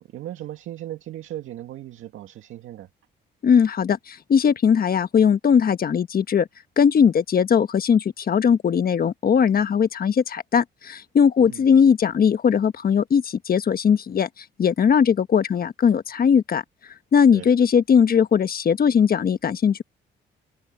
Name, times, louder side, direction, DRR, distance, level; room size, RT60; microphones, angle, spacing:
voice 1, 0.0-2.9 11.4-11.6 17.3-17.5, right 13 dB, 80° right, 2.2 m, -37 dB
voice 2, 3.4-6.5 6.8-14.3 14.6-16.6 17.1-19.8, left 7 dB, 50° left, 1.4 m, -19 dB
open air
cardioid pair, 90°, 20 cm